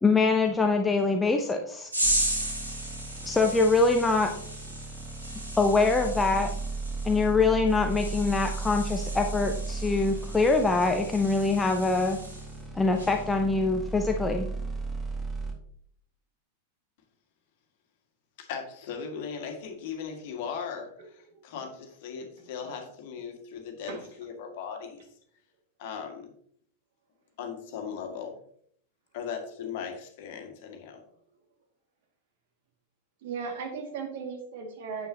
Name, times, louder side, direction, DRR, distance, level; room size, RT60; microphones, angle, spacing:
voice 1, 0.0-1.9 3.2-4.3 5.6-6.5 7.0-12.2 12.8-14.5, left 3 dB, 10° left, 4 dB, 0.8 m, -24 dB
sound 1, 1.9-12.6 12.9-13.3, right 1 dB, 85° right, 3.1 m, -35 dB
sound 2, 2.0-15.5, right 3 dB, 15° right, 2.0 m, -36 dB
voice 2, 18.4-25.1 25.8-26.3 27.4-28.4 29.1-31.0, left 6 dB, 50° left, 3 dB, 1.9 m, -38 dB
voice 3, 33.2-35.1, right 5 dB, 55° right, 3 dB, 2.2 m, -36 dB
9.2 x 8.8 x 2.9 m, 0.65 s
figure-of-eight pair, 90°, 0 cm